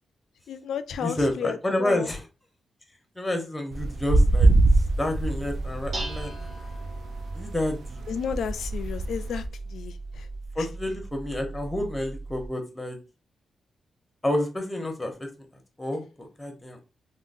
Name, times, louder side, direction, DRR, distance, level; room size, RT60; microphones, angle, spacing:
voice 1, 0.5-2.1 8.1-10.3 10.6-10.7, left 7 dB, 85° left, 0.3 m, -33 dB
voice 2, 1.0-2.3 3.2-4.5 5.0-6.5 7.3-8.0 10.6-13.0 14.2-15.3 15.8-16.8, left 1 dB, 10° left, 0.7 m, -29 dB
sound 1, 3.7-9.5, right 2 dB, 70° right, 0.3 m, -23 dB
Dishes pots and pans, 5.4-12.5, right 2 dB, 45° right, 1.1 m, -38 dB
3.6 x 2.0 x 2.5 m
wide cardioid pair, 130°, 0 cm